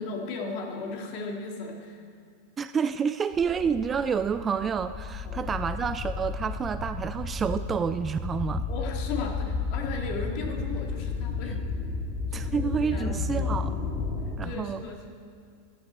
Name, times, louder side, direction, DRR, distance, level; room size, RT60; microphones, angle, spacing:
voice 1, 0.0-2.0 5.2-5.4 8.7-11.7 12.3-13.6 14.4-15.1, left 4 dB, 45° left, 2 dB, 1.8 m, -36 dB
voice 2, 2.6-8.7 12.3-13.7 14.4-14.8, right 6 dB, 20° right, 12 dB, 0.3 m, -29 dB
sound 1, 3.3-14.4, left 4 dB, 25° left, 1.8 m, -32 dB
14.5 x 11.0 x 4.2 m, 2.3 s
figure-of-eight pair, 90°, 0 cm